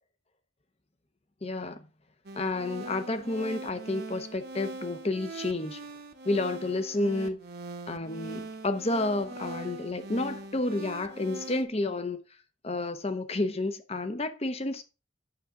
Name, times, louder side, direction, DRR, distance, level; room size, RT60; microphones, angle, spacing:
voice 1, 1.4-1.8 2.3-5.8 6.2-7.4 7.9-12.2 12.6-14.8, left 2 dB, 30° left, 0.8 m, -30 dB
sound 1, 2.3-11.6, right 2 dB, 50° right, 1.0 m, -42 dB
8.8 x 7.0 x 3.7 m
head